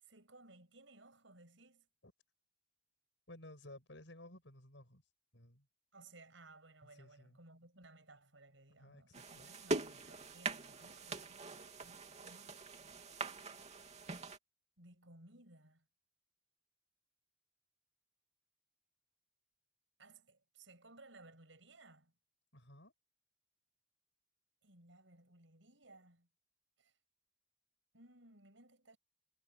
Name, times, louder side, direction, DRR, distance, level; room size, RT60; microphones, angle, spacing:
voice 1, 0.0-1.9 5.9-13.0 14.8-15.8 20.0-22.1 24.6-26.3 26.8-26.9 27.9-29.0, right 2 dB, 75° right, 7.7 m, -61 dB
voice 2, 3.3-5.0 5.3-5.7 6.8-7.4 8.8-9.5 22.5-22.9, left 1 dB, 70° left, 7.8 m, -56 dB
sound 1, 9.1-14.4, right 3 dB, 35° right, 2.9 m, -43 dB
head